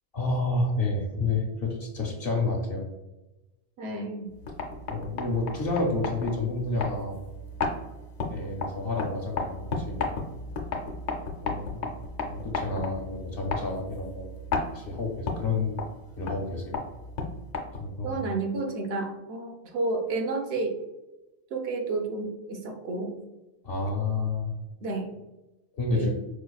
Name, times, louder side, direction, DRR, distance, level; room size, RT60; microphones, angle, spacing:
voice 1, 0.1-2.9 4.9-7.2 8.3-10.1 11.4-11.8 12.2-14.3 14.7-15.8 16.2-16.8 17.8-18.2 23.6-24.6 25.7-26.1, left 3 dB, 65° left, 0 dB, 0.8 m, -29 dB
voice 2, 3.8-4.3 18.0-20.8 21.5-23.2 24.8-25.1 25.9-26.1, right 3 dB, 70° right, 3 dB, 0.9 m, -31 dB
sound 1, 4.3-18.0, left 3 dB, 80° left, 1.0 m, -35 dB
4.8 x 2.4 x 2.3 m, 1.0 s
omnidirectional pair, 1.1 m